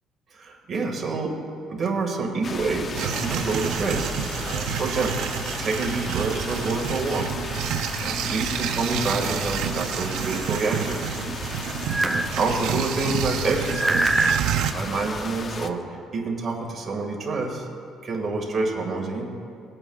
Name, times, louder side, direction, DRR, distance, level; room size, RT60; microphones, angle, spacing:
voice 1, 0.3-1.3 1.7-4.1 4.5-5.2 5.6-7.3 8.0-11.1 12.0-14.3 14.6-17.7 18.0-19.2, right 3 dB, 35° right, 0 dB, 1.9 m, -28 dB
sound 1, 2.4-15.7, left 4 dB, 35° left, 0.6 m, -35 dB
sound 2, 2.9-14.7, right 9 dB, 75° right, 0.5 m, -29 dB
sound 3, 11.9-12.3 13.6-14.4, right 2 dB, 10° right, 0.3 m, -23 dB
20.0 x 8.7 x 2.4 m, 2.6 s
cardioid pair, 115°, 0 cm